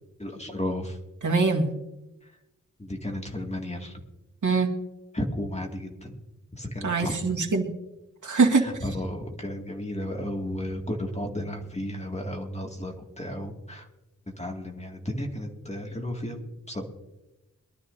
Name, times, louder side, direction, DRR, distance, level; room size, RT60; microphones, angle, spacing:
voice 1, 0.2-1.0 2.2-2.3 2.8-4.0 5.1-6.2 6.5-7.4 8.5-13.9 14.4-16.8, left 1 dB, 20° left, 1 dB, 2.1 m, -33 dB
voice 2, 1.2-1.7 4.4-4.7 6.8-7.7 8.2-8.6, right 4 dB, 70° right, 0 dB, 2.1 m, -23 dB
23.0 x 12.5 x 2.7 m, 0.99 s
wide cardioid pair, 85°, 31 cm